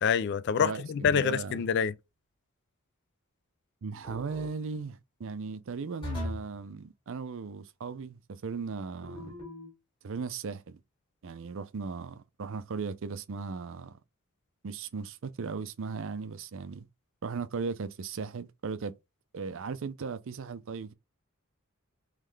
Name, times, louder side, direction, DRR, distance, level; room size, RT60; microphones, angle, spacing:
voice 1, 0.0-1.9, left 7 dB, 50° left, 0.3 m, -26 dB
voice 2, 0.6-1.6 3.8-9.4 10.0-10.8 11.2-14.0 14.6-16.9 17.2-18.9 19.3-20.9, right 5 dB, 60° right, 0.5 m, -37 dB
sound 1, 4.0-4.5 6.0-6.6 9.0-9.7, left 2 dB, 20° left, 1.6 m, -39 dB
3.7 x 3.2 x 3.2 m
head